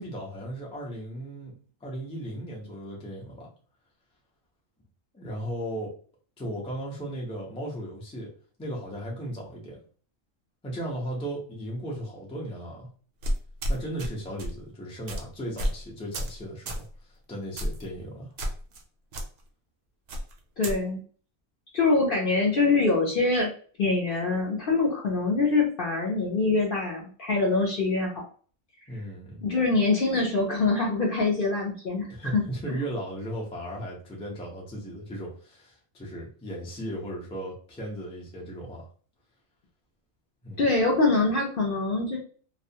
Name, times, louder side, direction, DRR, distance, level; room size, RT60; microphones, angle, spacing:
voice 1, 0.0-1.5 1.8-3.5 5.1-5.9 6.4-8.3 8.6-9.8 10.6-12.9 13.7-16.9 17.3-18.3 28.9-29.4 32.1-38.9 40.4-40.6, right 1 dB, 10° left, -3 dB, 0.4 m, -36 dB
sound 1, 13.2-14.1 14.4-14.6 15.1-15.2 15.6-15.8 16.1-16.4 16.7-16.9 17.6-17.8 18.4-18.8 19.1-19.2 20.1-20.8, equal, 60° right, 0.7 m, -30 dB
voice 2, 20.6-21.0 21.7-23.5 23.8-28.1 29.4-32.4 32.7-32.8 40.6-42.2, left 3 dB, 55° left, -2 dB, 0.6 m, -24 dB
2.4 x 2.1 x 2.7 m, 0.43 s
omnidirectional pair, 1.4 m